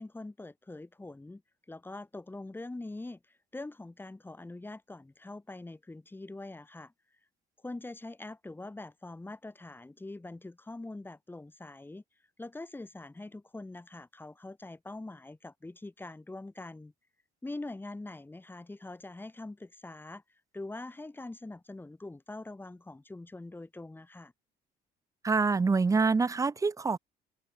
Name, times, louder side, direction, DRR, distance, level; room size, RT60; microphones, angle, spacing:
voice 1, 0.0-1.4 1.7-6.9 7.6-12.0 12.4-16.9 17.4-24.3, left 2 dB, 10° left, 5.8 m, -44 dB
voice 2, 25.2-27.0, right 4 dB, 20° right, 0.7 m, -26 dB
open air
cardioid pair, 110°, 17 cm